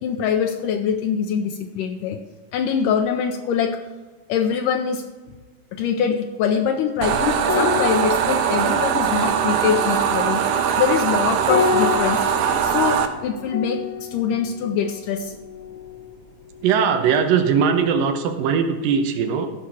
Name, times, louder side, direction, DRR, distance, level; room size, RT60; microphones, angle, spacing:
voice 1, 0.0-2.2 2.5-3.8 4.3-5.0 5.7-10.4 10.8-12.2 12.6-15.3, left 7 dB, 80° left, 4 dB, 2.1 m, -23 dB
sound 1, 7.0-13.1, right 8 dB, 75° right, 2.1 m, -21 dB
sound 2, 7.4-16.1 16.4-16.7, left 6 dB, 60° left, 1.3 m, -29 dB
voice 2, 16.6-19.5, right 6 dB, 90° right, 6 dB, 2.7 m, -20 dB
15.0 x 5.9 x 4.7 m, 1.3 s
omnidirectional pair, 3.9 m